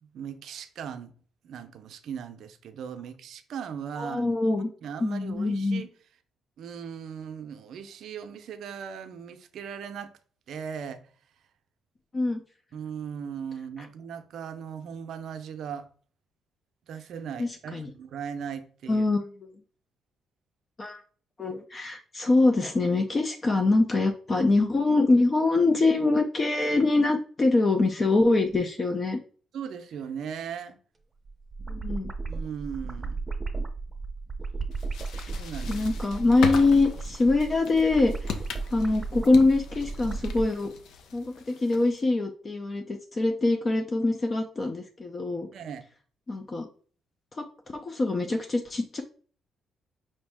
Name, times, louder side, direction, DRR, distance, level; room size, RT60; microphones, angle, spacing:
voice 1, 0.0-1.1 1.4-4.3 4.8-5.9 6.6-10.1 10.5-11.0 12.7-15.9 16.9-19.0 29.5-30.8 32.3-33.2 35.3-35.8 45.5-45.8, right 7 dB, 70° right, 0.5 m, -38 dB
voice 2, 4.0-4.7 5.0-5.8 12.1-12.4 17.4-17.9 18.9-19.3 20.8-21.0 21.4-29.2 31.7-32.1 35.7-38.4 38.7-40.7 41.1-45.5 46.3-46.7 47.3-47.5 47.7-49.0, left 2 dB, 35° left, 0.5 m, -24 dB
sound 1, 31.2-40.5, right 3 dB, 20° right, 0.7 m, -35 dB
sound 2, 34.7-42.0, left 6 dB, 80° left, 0.5 m, -39 dB
5.2 x 2.6 x 3.5 m
cardioid pair, 90°, 0 cm